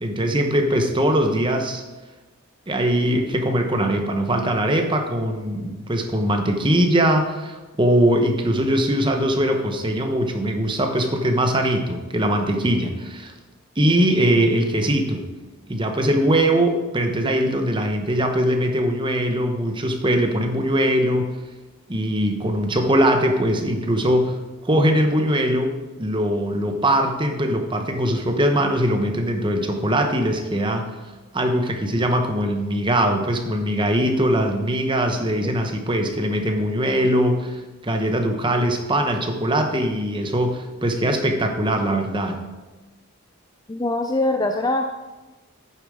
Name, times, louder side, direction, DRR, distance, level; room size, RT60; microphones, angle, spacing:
voice 1, 0.0-1.8 2.7-13.3 13.8-15.3 15.7-21.3 21.9-24.4 24.6-30.9 31.3-42.4, right 1 dB, 20° right, 4 dB, 0.9 m, -21 dB
voice 2, 43.7-44.9, left 2 dB, 15° left, 5 dB, 0.4 m, -22 dB
9.0 x 7.1 x 4.9 m, 1.2 s
head